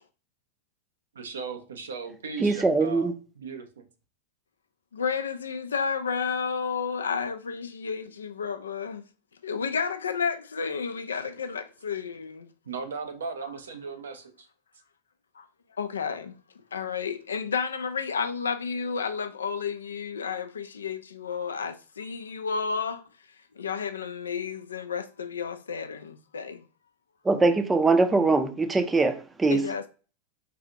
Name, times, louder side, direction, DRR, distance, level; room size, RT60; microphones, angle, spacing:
voice 1, 1.1-3.8 12.7-14.3, right 5 dB, 75° right, 0.6 m, -37 dB
voice 2, 2.4-3.1 27.2-29.7, right 3 dB, 15° right, 0.5 m, -22 dB
voice 3, 4.9-9.0 9.4-12.5 15.4-15.5 15.8-16.3 16.7-23.0 23.6-26.6 29.5-29.9, left 6 dB, 75° left, 0.4 m, -31 dB
4.0 x 2.4 x 2.7 m
figure-of-eight pair, 95°, 0 cm